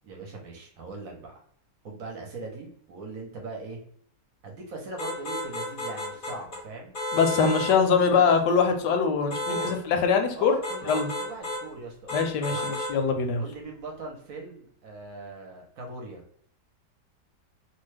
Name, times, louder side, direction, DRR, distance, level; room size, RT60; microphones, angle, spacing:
voice 1, 0.0-1.3 1.8-3.8 4.4-6.9 8.0-8.3 9.4-9.8 10.3-12.7 13.4-16.2, right 2 dB, 60° right, 0 dB, 1.1 m, -40 dB
sound 1, 5.0-6.6 6.9-7.8 9.3-9.8 10.6-11.6 12.1-13.0, left 1 dB, 45° left, 0.7 m, -32 dB
voice 2, 7.1-10.6 10.9-11.1 12.1-13.4, left 5 dB, 85° left, 5 dB, 1.2 m, -23 dB
3.0 x 2.2 x 3.2 m, 0.63 s
omnidirectional pair, 1.8 m